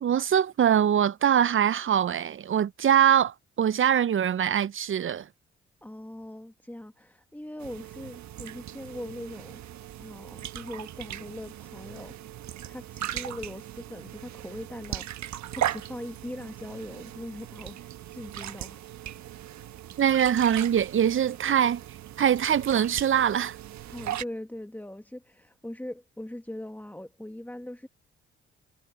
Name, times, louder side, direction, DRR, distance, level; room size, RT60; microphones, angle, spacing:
voice 1, 0.0-5.3 20.0-21.8 22.2-23.6, right 9 dB, 45° right, 0.6 m, -23 dB
voice 2, 5.8-9.6 10.0-15.1 15.5-18.8 23.9-27.9, left 1 dB, 5° left, 1.9 m, -41 dB
sound 1, 7.6-24.2, right 12 dB, 70° right, 1.4 m, -38 dB
hypercardioid pair, 45°, 29 cm